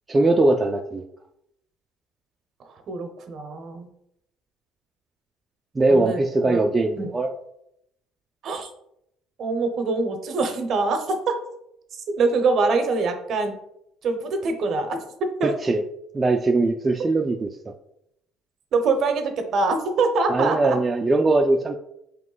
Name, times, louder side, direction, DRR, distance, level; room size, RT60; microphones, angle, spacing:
voice 1, 0.1-1.0 5.7-7.3 15.4-15.8 16.1-17.7 20.3-21.8, right 2 dB, 20° right, 3 dB, 0.3 m, -21 dB
voice 2, 2.6-3.9 5.9-6.6 7.0-7.1 8.4-8.7 9.4-11.2 12.2-13.5 14.0-15.0 15.4-15.5 18.7-20.8, right 3 dB, 55° right, 6 dB, 0.7 m, -24 dB
3.5 x 3.0 x 3.8 m, 0.77 s
cardioid pair, 110°, 0 cm